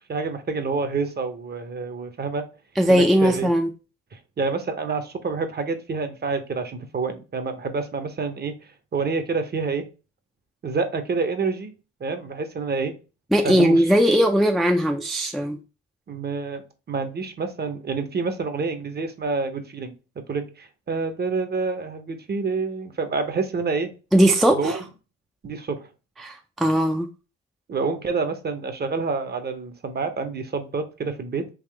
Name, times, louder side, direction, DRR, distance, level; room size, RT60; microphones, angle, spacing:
voice 1, 0.1-2.5 2.9-3.5 4.1-8.6 8.9-9.9 10.6-11.7 12.0-13.0 13.4-13.9 16.1-23.9 24.5-24.8 25.4-25.9 27.7-31.5, right 4 dB, 35° right, 0.7 m, -28 dB
voice 2, 2.8-3.7 13.3-15.6 24.1-24.8 26.2-27.1, equal, ahead, 0.4 m, -19 dB
3.6 x 2.8 x 3.3 m
cardioid pair, 90°, 30 cm